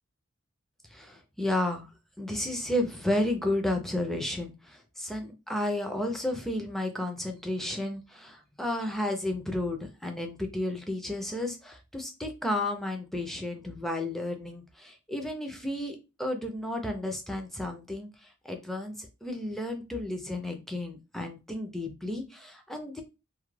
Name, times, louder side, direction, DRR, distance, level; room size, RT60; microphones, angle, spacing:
voice 1, 0.9-1.9 2.2-23.0, left 1 dB, ahead, 4 dB, 0.4 m, -32 dB
2.3 x 2.1 x 3.1 m, 0.28 s
head